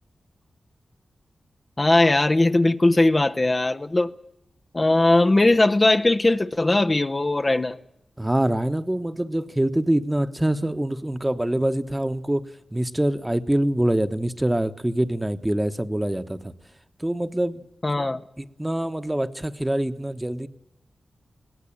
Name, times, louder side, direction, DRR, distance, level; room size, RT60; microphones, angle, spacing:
voice 1, 1.8-4.1 4.7-7.8 17.8-18.2, left 2 dB, 30° left, 0.8 m, -19 dB
voice 2, 8.2-12.4 12.7-16.5 17.0-17.6 18.4-20.5, right 1 dB, 15° right, 1.2 m, -25 dB
21.5 x 17.5 x 8.7 m
cardioid pair, 60°, 0 cm